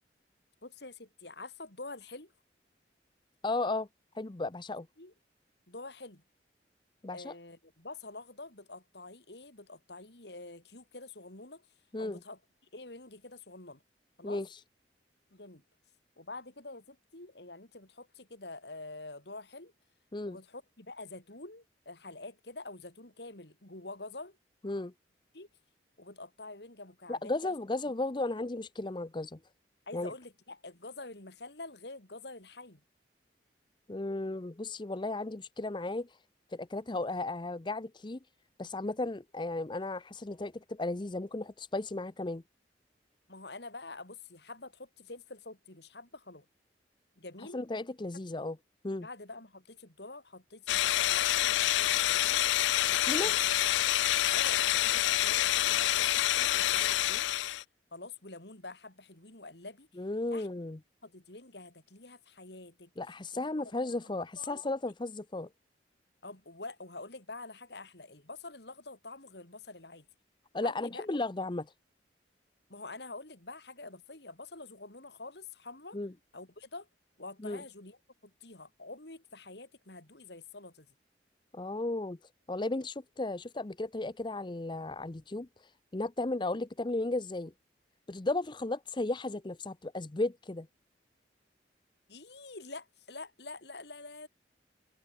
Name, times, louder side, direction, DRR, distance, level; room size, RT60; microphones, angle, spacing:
voice 1, 0.6-2.3 5.0-5.1 5.7-6.2 7.1-11.7 12.0-12.4 12.7-13.8 14.2-14.4 15.3-15.6 16.2-19.7 20.3-24.4 25.3-25.5 26.0-27.5 27.9-28.0 29.9-32.8 43.3-46.5 47.2-47.6 49.0-52.4 52.8-53.5 54.3-57.3 57.9-59.9 60.3-60.5 61.0-62.9 63.3-63.7 64.0-64.6 66.2-70.1 70.6-71.1 72.7-76.0 76.3-76.9 77.2-80.9 92.1-94.3, left 2 dB, 65° left, 3.9 m, -47 dB
voice 2, 3.4-3.9 4.1-4.9 7.0-7.3 11.9-12.2 14.2-14.6 20.1-20.4 24.6-24.9 27.1-29.4 29.9-30.1 33.9-36.2 36.5-38.2 38.6-42.4 47.5-48.6 48.8-49.1 53.0-53.3 60.0-60.8 63.0-65.5 70.5-71.7 75.9-76.1 77.4-77.6 81.5-82.2 82.5-87.5 88.1-90.7, left 2 dB, 25° left, 0.6 m, -35 dB
sound 1, 50.7-57.6, left 14 dB, 80° left, 0.3 m, -27 dB
head